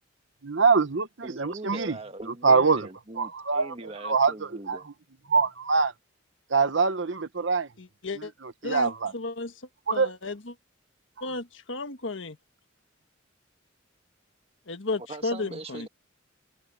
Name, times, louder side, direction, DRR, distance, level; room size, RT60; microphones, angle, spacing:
voice 1, 0.4-2.0 2.4-2.9 3.2-3.7 4.0-4.3 4.7-4.8 5.3-5.9 6.5-7.7 8.1-9.1 9.9-10.1, right 4 dB, 65° right, 1.0 m, -24 dB
voice 2, 1.2-4.9 15.1-15.9, right 2 dB, 30° right, 1.7 m, -41 dB
voice 3, 7.8-8.3 8.6-9.5 9.9-10.4 11.2-12.4 14.7-15.9, left 3 dB, 75° left, 1.5 m, -33 dB
head